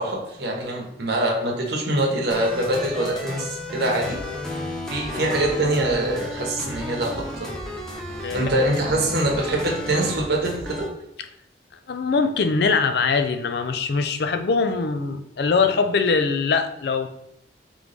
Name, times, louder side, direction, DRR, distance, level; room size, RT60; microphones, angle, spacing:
voice 1, 0.0-4.2 4.9-7.5 8.3-10.8, right 1 dB, 60° right, -1 dB, 1.0 m, -24 dB
sound 1, 2.3-10.9, left 1 dB, 5° left, 0.5 m, -33 dB
voice 2, 5.0-5.4 8.2-8.5 11.9-17.1, left 4 dB, 60° left, 8 dB, 0.4 m, -22 dB
3.8 x 3.2 x 3.4 m, 0.76 s
head